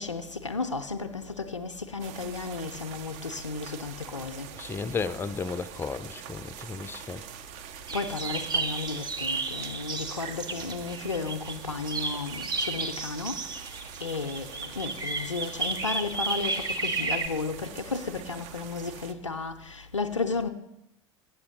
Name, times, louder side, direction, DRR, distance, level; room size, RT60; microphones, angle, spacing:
voice 1, 0.0-4.5 7.9-20.5, left 4 dB, 90° left, 0.4 m, -34 dB
sound 1, 2.0-19.1, right 9 dB, 50° right, 0.6 m, -45 dB
voice 2, 4.6-7.2, left 5 dB, 15° left, 0.4 m, -33 dB
sound 2, 7.9-11.5 11.9-17.3, right 3 dB, 25° right, 0.9 m, -32 dB
8.3 x 7.0 x 5.1 m
figure-of-eight pair, 70°, 15 cm